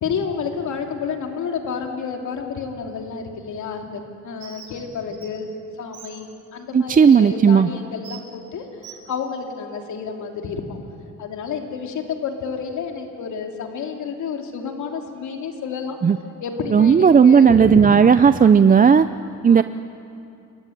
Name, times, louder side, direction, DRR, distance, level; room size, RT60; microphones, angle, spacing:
voice 1, 0.0-5.5 5.8-10.8 11.2-16.0 16.4-18.5 19.2-19.6, left 5 dB, 70° left, 2 dB, 3.0 m, -30 dB
Bird, 4.4-4.7 5.1-5.3 5.9-6.1 6.9-7.2 8.0-8.2 8.8-9.0, right 9 dB, 75° right, 6.8 m, -40 dB
voice 2, 6.7-7.7 16.0-16.2 16.7-19.1 19.4-19.6, right 6 dB, 30° right, 12 dB, 0.6 m, -13 dB
28.0 x 14.5 x 10.0 m, 2.6 s
cardioid pair, 90°, 30 cm